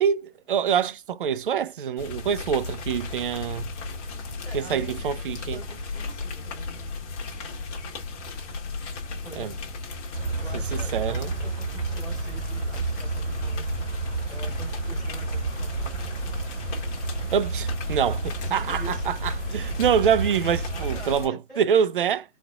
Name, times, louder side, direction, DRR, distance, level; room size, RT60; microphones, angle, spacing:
voice 1, 0.0-3.7 4.5-5.6 9.4-9.5 10.7-11.3 17.3-22.2, right 8 dB, 45° right, 0.5 m, -25 dB
sound 1, 2.0-21.3, left 3 dB, 30° left, 1.4 m, -35 dB
voice 2, 4.4-7.1 9.1-9.7 10.4-13.9 14.3-15.9 18.4-19.1 20.7-21.9, right 1 dB, 5° right, 2.4 m, -44 dB
sound 2, 10.1-21.0, right 4 dB, 65° right, 1.2 m, -31 dB
4.2 x 4.0 x 2.3 m
figure-of-eight pair, 140°, 38 cm